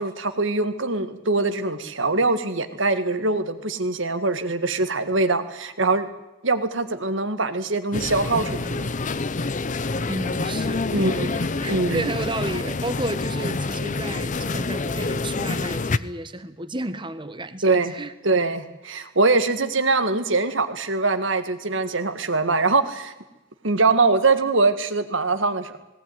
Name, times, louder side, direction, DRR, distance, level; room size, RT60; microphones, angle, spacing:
voice 1, 0.0-6.1 6.4-8.9 10.9-11.3 11.7-12.0 17.6-17.9 18.2-23.1 23.6-25.8, right 3 dB, 65° right, 1.7 m, -23 dB
sound 1, 7.9-16.0, left 3 dB, 40° left, 0.7 m, -27 dB
voice 2, 10.1-18.1, right 1 dB, 25° right, 1.3 m, -32 dB
19.0 x 18.0 x 9.4 m
head